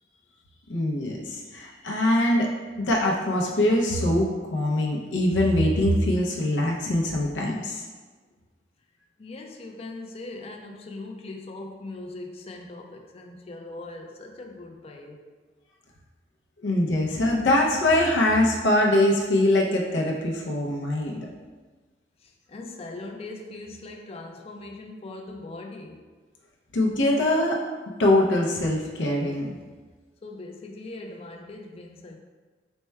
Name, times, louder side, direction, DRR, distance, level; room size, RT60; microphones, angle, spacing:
voice 1, 0.7-2.5 2.8-7.8 16.6-21.3 26.7-27.6 28.0-29.6, left 1 dB, 90° left, -1 dB, 0.5 m, -23 dB
voice 2, 9.2-15.2 22.2-26.0 30.2-32.2, left 2 dB, 35° left, 3 dB, 0.4 m, -40 dB
4.3 x 2.1 x 4.5 m, 1.4 s
head